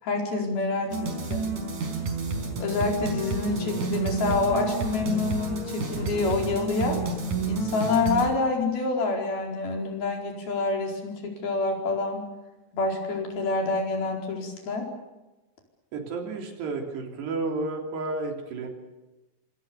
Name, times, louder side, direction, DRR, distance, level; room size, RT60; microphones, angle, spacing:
voice 1, 0.0-1.4 2.6-7.0 7.5-12.2 12.7-14.9, left 3 dB, 65° left, 1 dB, 6.4 m, -27 dB
sound 1, 0.9-8.3, right 4 dB, 50° right, 5.7 m, -30 dB
voice 2, 15.9-18.7, right 3 dB, 80° right, 3 dB, 5.6 m, -31 dB
27.0 x 26.0 x 7.1 m, 1.0 s
omnidirectional pair, 4.7 m